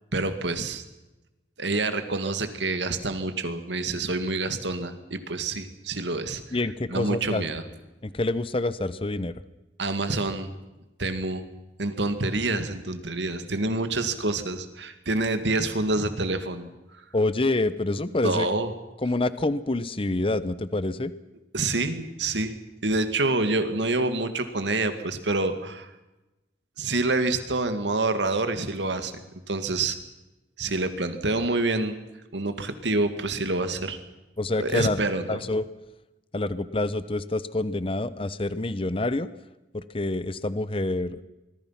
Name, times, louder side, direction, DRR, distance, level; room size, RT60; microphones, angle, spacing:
voice 1, 0.1-0.8 1.6-6.4 6.9-7.6 9.8-10.5 11.0-11.4 11.8-16.7 18.2-18.7 21.5-22.5 22.8-25.9 26.8-29.1 29.5-30.0 30.6-32.0 32.3-34.0 34.6-35.4, right 2 dB, 85° right, 9 dB, 2.3 m, -27 dB
voice 2, 6.5-7.4 8.0-9.3 17.1-18.5 19.0-21.1 34.4-35.0 35.3-35.6 36.3-39.3 39.7-41.2, left 2 dB, 30° left, 15 dB, 0.8 m, -27 dB
25.0 x 21.0 x 5.9 m, 1.0 s
head